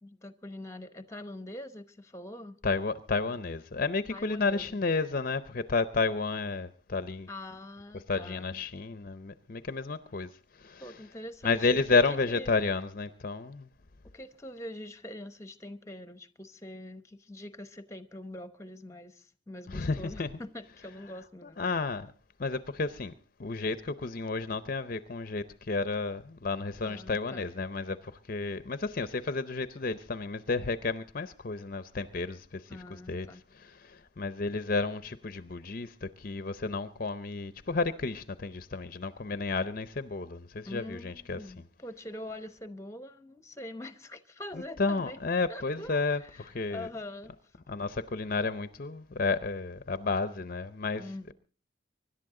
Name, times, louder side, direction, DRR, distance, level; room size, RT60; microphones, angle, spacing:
voice 1, 0.0-2.6 4.1-4.8 7.3-8.6 10.8-12.0 12.3-12.6 14.1-21.6 26.8-27.5 32.7-33.4 40.7-45.2 45.5-47.6 51.0-51.3, left 1 dB, 15° left, 0.9 m, -44 dB
voice 2, 2.6-7.3 8.1-10.9 11.4-13.7 19.7-20.3 21.4-22.1 22.4-23.1 23.4-33.3 33.6-41.5 44.8-46.9 47.7-51.0, left 4 dB, 45° left, 0.6 m, -31 dB
25.0 x 11.5 x 3.7 m
head